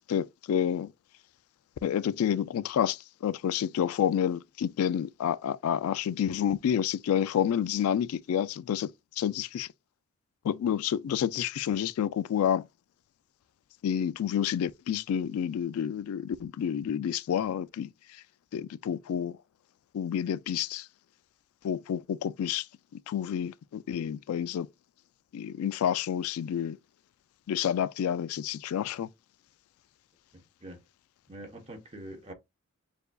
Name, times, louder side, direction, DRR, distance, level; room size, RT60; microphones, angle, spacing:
voice 1, 0.1-0.9 1.8-8.9 9.2-9.7 10.4-12.7 13.8-17.9 18.5-19.4 19.9-20.9 21.6-22.7 23.1-24.7 25.3-26.8 27.5-29.1, left 9 dB, 75° left, 0.3 m, -29 dB
voice 2, 30.3-30.8 31.3-32.3, right 1 dB, 30° right, 1.0 m, -44 dB
6.7 x 2.6 x 2.3 m
head